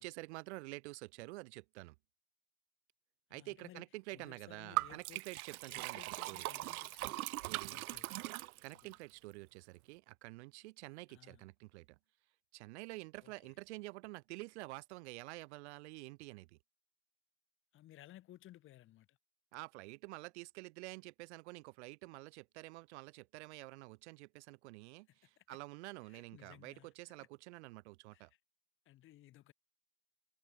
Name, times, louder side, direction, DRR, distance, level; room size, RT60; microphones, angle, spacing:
voice 1, 0.0-1.9 3.3-6.4 7.5-7.8 8.6-12.0 12.5-16.6 19.5-28.3, right 22 dB, 50° right, 1.2 m, -49 dB
voice 2, 3.3-3.8 4.1-5.2 5.7-7.2 7.7-8.3 8.7-9.0 11.1-11.5 13.2-13.6 17.7-19.2 25.1-25.6 26.0-26.9 27.2-27.3 28.1-28.4 28.9-29.5, left 14 dB, 30° left, 4.0 m, -59 dB
Liquid, 4.8-9.0, right 18 dB, 80° right, 0.7 m, -40 dB
supercardioid pair, 160°, 43 cm